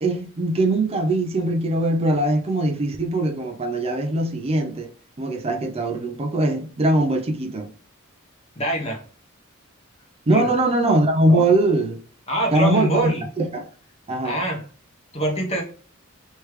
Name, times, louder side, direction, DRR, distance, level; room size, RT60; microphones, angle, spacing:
voice 1, 0.0-4.9 5.2-7.7 10.3-12.0 12.5-13.1 13.4-13.7 14.1-14.4, right 2 dB, 30° right, 0.5 m, -21 dB
voice 2, 8.6-9.0 10.3-10.5 11.3-11.5 12.3-13.2 14.2-14.6 15.1-15.6, right 1 dB, 30° left, 1.1 m, -24 dB
3.2 x 3.1 x 3.1 m
head